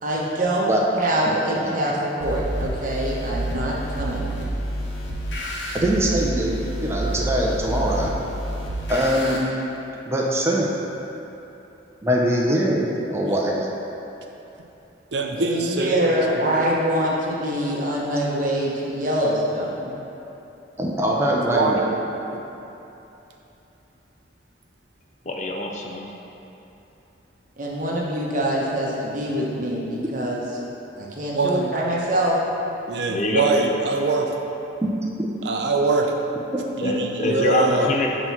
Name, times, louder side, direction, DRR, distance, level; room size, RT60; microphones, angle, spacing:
voice 1, 0.0-0.7 0.9-4.3 15.4-20.0 27.6-30.4 31.0-32.4, right 1 dB, 45° right, -4 dB, 1.0 m, -24 dB
sound 1, 2.2-9.4, right 1 dB, 80° left, 1.1 m, -29 dB
voice 2, 5.7-8.1 8.9-9.4 10.1-10.7 12.0-12.8 13.1-13.7 20.8-21.8 35.2-35.3, right 1 dB, 15° right, -3 dB, 0.6 m, -22 dB
voice 3, 15.1-16.6 21.5-21.9 22.3-22.4 31.3-31.7 32.9-34.3 35.4-36.1 36.8-37.9, right 3 dB, 65° right, 2 dB, 0.5 m, -23 dB
voice 4, 25.3-26.0 33.1-33.8 36.8-38.1, left 1 dB, 40° left, 0 dB, 0.5 m, -24 dB
7.6 x 3.0 x 5.5 m, 3.0 s
head